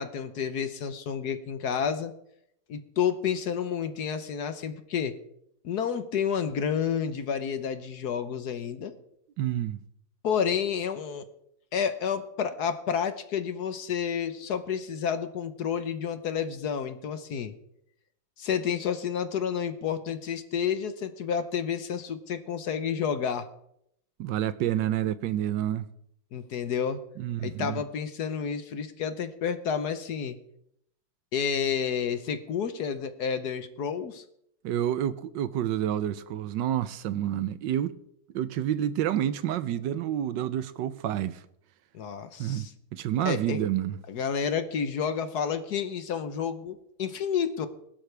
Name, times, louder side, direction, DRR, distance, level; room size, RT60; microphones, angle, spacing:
voice 1, 0.0-2.1 2.7-5.2 5.6-8.9 10.2-11.3 11.7-17.5 18.4-23.5 26.3-27.0 27.4-30.4 31.3-34.2 41.9-42.7 43.2-43.6 44.1-47.7, left 7 dB, 60° left, 1.4 m, -30 dB
voice 2, 9.4-9.8 24.2-25.9 27.2-27.8 34.6-37.9 38.3-41.4 42.4-42.7 42.9-44.0, right 11 dB, 75° right, 1.3 m, -29 dB
20.5 x 12.0 x 3.4 m
omnidirectional pair, 2.0 m